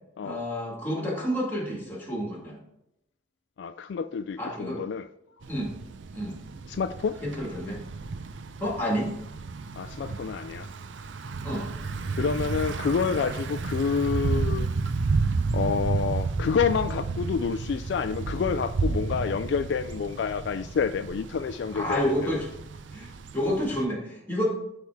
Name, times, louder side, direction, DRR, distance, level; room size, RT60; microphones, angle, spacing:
voice 1, 0.2-2.6 4.4-4.8 5.5-5.7 6.1-6.4 7.2-7.8 8.6-9.1 11.4-11.7 21.7-22.5 22.9-24.5, equal, 10° left, 2.1 m, -29 dB
voice 2, 3.6-5.1 6.7-7.2 9.7-10.7 12.2-14.7 15.5-22.1, left 6 dB, 65° left, 0.3 m, -28 dB
Thunder / Bicycle, 5.4-23.8, right 4 dB, 75° right, 0.5 m, -32 dB
10.5 x 3.6 x 4.7 m
head